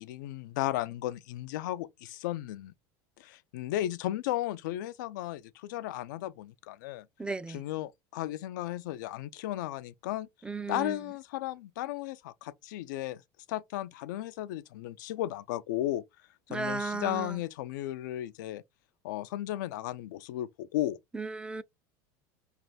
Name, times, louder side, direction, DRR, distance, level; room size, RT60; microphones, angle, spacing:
voice 1, 0.0-2.7 3.2-7.1 7.5-10.3 10.7-13.2 13.5-16.0 16.5-18.6 19.0-21.0, left 14 dB, 85° left, 0.4 m, -35 dB
voice 2, 7.2-7.6 10.4-11.0 16.5-17.4 21.1-21.6, right 3 dB, 10° right, 0.3 m, -35 dB
3.3 x 2.5 x 4.0 m
supercardioid pair, 115°, 10 cm